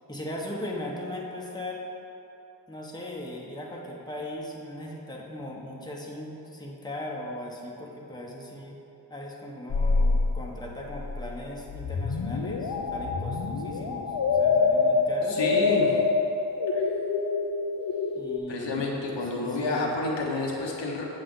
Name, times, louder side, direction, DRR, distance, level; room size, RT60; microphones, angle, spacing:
voice 1, 0.1-1.8 2.7-8.8 9.1-15.4 18.1-19.9, left 1 dB, 10° left, -2 dB, 1.2 m, -38 dB
sound 1, 9.7-18.4, left 4 dB, 55° left, 0.7 m, -26 dB
voice 2, 15.3-15.9 16.7-16.9 18.5-21.0, left 2 dB, 80° left, -3 dB, 1.3 m, -29 dB
7.7 x 7.5 x 3.9 m, 2.9 s
cardioid pair, 55°, 43 cm